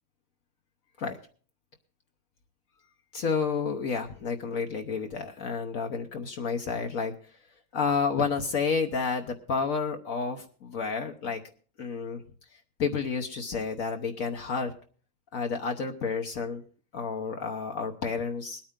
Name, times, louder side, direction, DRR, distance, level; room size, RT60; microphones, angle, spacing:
voice 1, 3.1-7.1 7.7-11.4 11.8-12.2 12.8-14.7 15.3-16.6 16.9-18.6, left 5 dB, 60° left, 5 dB, 1.3 m, -30 dB
21.0 x 9.0 x 3.7 m, 0.42 s
omnidirectional pair, 1.8 m